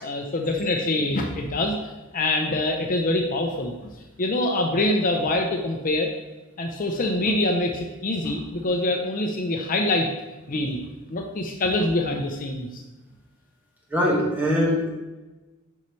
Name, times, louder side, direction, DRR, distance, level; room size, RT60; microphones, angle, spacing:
voice 1, 0.0-1.8 2.1-3.7 4.2-6.1 6.6-10.1 10.5-10.8 11.1-12.8, left 2 dB, 40° left, 2 dB, 0.6 m, -25 dB
voice 2, 13.9-14.9, equal, 10° right, -5 dB, 1.7 m, -22 dB
8.3 x 5.4 x 3.2 m, 1.1 s
head